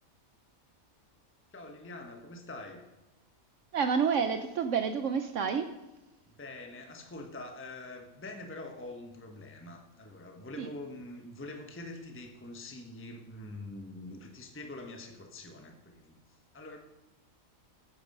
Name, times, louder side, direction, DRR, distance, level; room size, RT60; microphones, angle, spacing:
voice 1, 1.5-2.9 6.3-16.2 16.5-16.8, left 2 dB, 10° left, 4 dB, 1.0 m, -45 dB
voice 2, 3.7-5.7 10.6-10.7, right 6 dB, 65° right, 9 dB, 1.0 m, -29 dB
14.0 x 9.1 x 5.4 m, 1.1 s
omnidirectional pair, 1.5 m